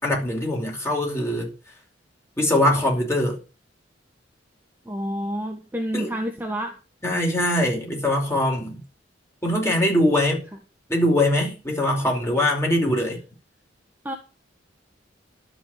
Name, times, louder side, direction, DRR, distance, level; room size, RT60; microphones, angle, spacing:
voice 1, 0.0-1.5 2.4-3.4 5.9-6.1 7.0-8.8 9.4-10.4 10.9-13.2, left 1 dB, 15° left, 5.2 m, -22 dB
voice 2, 4.8-6.8 14.0-14.2, equal, 10° right, 1.5 m, -29 dB
12.0 x 5.7 x 9.2 m
head